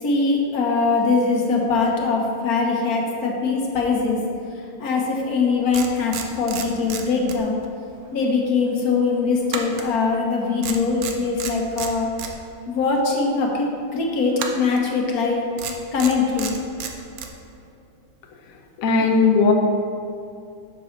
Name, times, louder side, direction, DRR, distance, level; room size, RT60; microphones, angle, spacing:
voice 1, 0.0-4.2 4.8-7.6 8.1-12.1 12.7-15.4 15.9-16.6, left 4 dB, 50° left, 0 dB, 1.4 m, -22 dB
sound 1, 5.2-5.3 5.7-8.2 9.5-10.3 10.6-12.3 14.3-14.9 15.6-17.3, right 7 dB, 65° right, 0.9 m, -32 dB
voice 2, 18.8-19.5, left 4 dB, 80° left, 2 dB, 0.7 m, -17 dB
9.8 x 6.8 x 3.2 m, 2.6 s
omnidirectional pair, 2.3 m